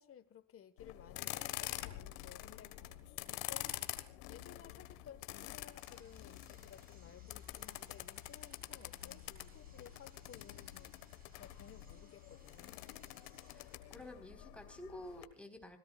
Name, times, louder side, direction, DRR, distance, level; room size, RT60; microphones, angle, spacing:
voice 1, 0.0-2.8 3.3-3.8 4.2-10.9 11.4-12.8, left 9 dB, 35° left, 1.4 m, -57 dB
sound 1, 0.8-15.2, left 16 dB, 85° left, 1.6 m, -47 dB
sound 2, 5.8-13.8, right 3 dB, 25° right, 3.9 m, -67 dB
voice 2, 13.4-15.8, left 1 dB, 5° left, 4.2 m, -51 dB
27.0 x 18.0 x 2.4 m
supercardioid pair, 105°, 39 cm